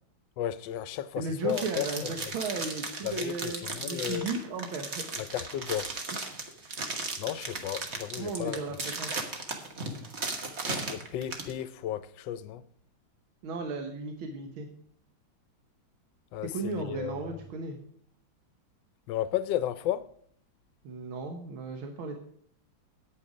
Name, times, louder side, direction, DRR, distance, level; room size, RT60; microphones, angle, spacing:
voice 1, 0.4-2.1 3.0-4.3 5.2-5.9 7.2-8.6 10.7-12.6 16.3-17.1 19.1-20.1, left 11 dB, 75° left, 1.2 m, -33 dB
voice 2, 1.2-5.1 8.2-9.2 13.4-14.7 16.4-17.8 20.8-22.2, right 3 dB, 85° right, 1.9 m, -35 dB
sound 1, 1.5-11.5, right 3 dB, 40° right, 1.4 m, -36 dB
9.2 x 8.8 x 4.9 m
omnidirectional pair, 2.2 m